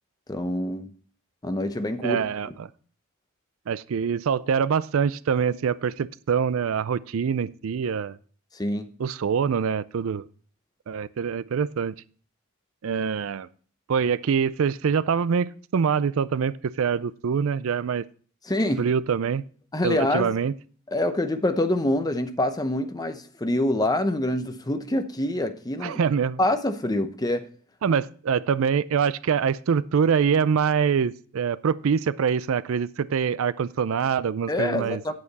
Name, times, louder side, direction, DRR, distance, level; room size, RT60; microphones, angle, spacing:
voice 1, 0.3-0.9 1.4-2.2 8.5-8.9 18.5-18.8 19.7-20.3 20.9-26.0 26.4-27.5 34.5-35.1, left 1 dB, 20° left, 8 dB, 0.8 m, -25 dB
voice 2, 2.0-2.7 3.7-8.2 9.0-10.3 10.9-11.9 12.8-13.5 13.9-18.0 18.8-19.4 19.8-20.5 25.8-26.4 27.8-35.0, right 6 dB, 75° right, 18 dB, 0.4 m, -24 dB
8.9 x 8.4 x 4.0 m, 0.43 s
head